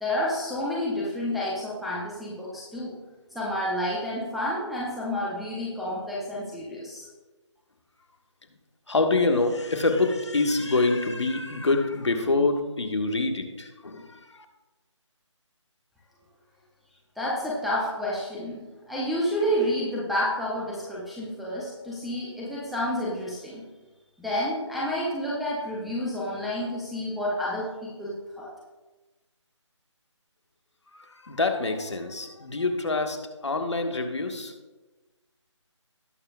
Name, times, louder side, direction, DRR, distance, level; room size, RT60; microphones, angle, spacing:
voice 1, 0.0-2.9 3.3-7.1 17.2-18.6 18.9-23.6 24.2-28.5, equal, ahead, -7 dB, 0.6 m, -29 dB
voice 2, 8.9-14.4 30.9-34.5, left 3 dB, 65° left, 4 dB, 1.6 m, -26 dB
18.5 x 6.7 x 2.4 m, 1.2 s
figure-of-eight pair, 155°, 16 cm